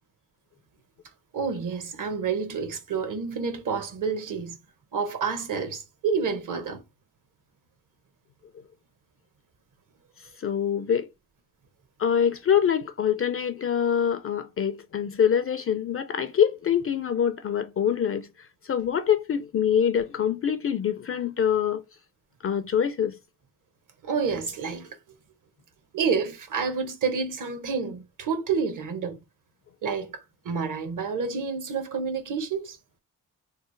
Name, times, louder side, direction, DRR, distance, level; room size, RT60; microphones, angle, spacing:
voice 1, 1.3-4.6 4.9-6.8 24.0-25.0 25.9-29.2 29.8-30.1 30.4-32.8, right 5 dB, 55° right, 0.9 m, -29 dB
voice 2, 10.4-11.1 12.0-21.8 22.4-23.1, left 8 dB, 35° left, 0.4 m, -25 dB
3.2 x 2.0 x 3.1 m
supercardioid pair, 55°, 38 cm